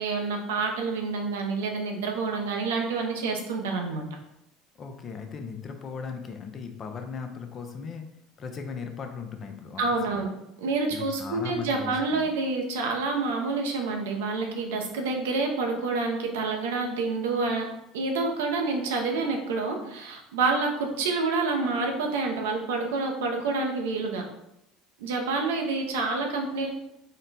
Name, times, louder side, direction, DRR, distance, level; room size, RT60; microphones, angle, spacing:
voice 1, 0.0-4.1 9.8-10.3 10.6-17.7 17.9-24.2 25.0-26.7, right 3 dB, 85° right, 2 dB, 0.7 m, -28 dB
voice 2, 4.8-8.0 8.4-10.3 10.9-12.3, left 5 dB, 40° left, 5 dB, 0.6 m, -38 dB
4.1 x 2.2 x 4.0 m, 0.84 s
hypercardioid pair, 85°, 0 cm